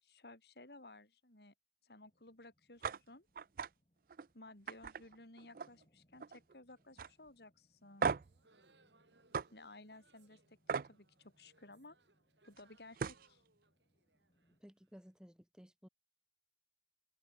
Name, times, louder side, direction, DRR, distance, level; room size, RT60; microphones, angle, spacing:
voice 1, 0.0-1.5 1.8-3.3 4.3-8.1 9.5-12.0 12.4-13.4, left 2 dB, 65° left, 4.2 m, -57 dB
sound 1, 2.0-14.6, equal, 35° left, 7.9 m, -77 dB
sound 2, 2.8-3.0 3.4-3.7 4.1-4.3 4.7-5.8 6.1-6.5 7.0-7.1 8.0-8.4 9.3-9.5 10.7-10.9 12.6-12.7 13.0-13.3, right 5 dB, 50° right, 0.4 m, -37 dB
sound 3, 8.2-15.2, right 3 dB, 85° right, 7.0 m, -72 dB
voice 2, 14.6-15.9, equal, 5° right, 2.8 m, -57 dB
head